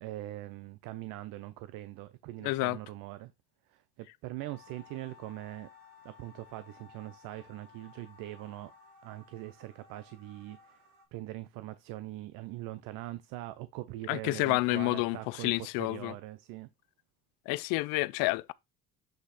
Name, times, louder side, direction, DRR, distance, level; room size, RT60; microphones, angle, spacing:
voice 1, 0.0-3.3 3.7-5.7 6.0-8.7 9.0-10.8 11.1-16.7, right 16 dB, 80° right, 0.6 m, -42 dB
voice 2, 2.4-2.8 14.1-16.1 17.5-18.5, left 22 dB, 85° left, 0.5 m, -29 dB
Wind instrument woodwind instrument, 4.4-9.4, left 13 dB, 35° left, 2.4 m, -58 dB
sound 1, 4.6-11.1, equal, 55° right, 2.7 m, -61 dB
8.0 x 3.3 x 4.1 m
supercardioid pair, 90°, 33 cm